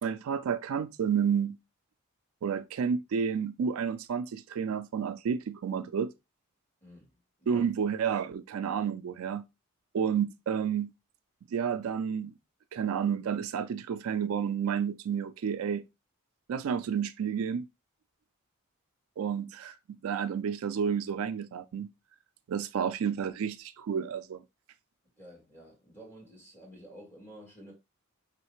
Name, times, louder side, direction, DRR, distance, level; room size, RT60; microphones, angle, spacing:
voice 1, 0.0-1.6 2.4-6.1 7.5-9.4 9.9-10.9 11.5-12.3 12.7-15.8 16.5-17.7 19.2-19.7 20.0-21.9 22.5-24.4, right 7 dB, 75° right, 0.3 m, -30 dB
voice 2, 6.8-7.7 25.2-27.7, equal, 10° left, 1.7 m, -51 dB
4.0 x 3.1 x 3.0 m
head